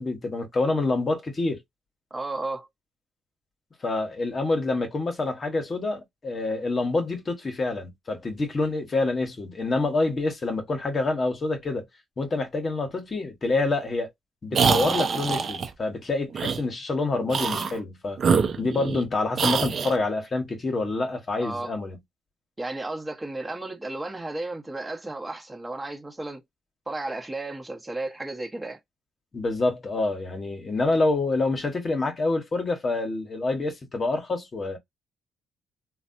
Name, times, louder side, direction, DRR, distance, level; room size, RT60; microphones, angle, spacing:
voice 1, 0.0-1.6 3.8-11.8 12.2-14.1 14.4-18.2 18.6-22.0 29.3-34.8, left 3 dB, 40° left, 1.0 m, -27 dB
voice 2, 2.1-2.7 21.4-21.7 22.6-26.4 26.9-28.8, right 2 dB, 15° right, 1.0 m, -33 dB
sound 1, 14.5-15.7 16.3-16.6 17.3-17.8 18.2-19.0 19.4-20.0, right 6 dB, 50° right, 0.6 m, -24 dB
3.2 x 2.2 x 2.6 m
cardioid pair, 90°, 0 cm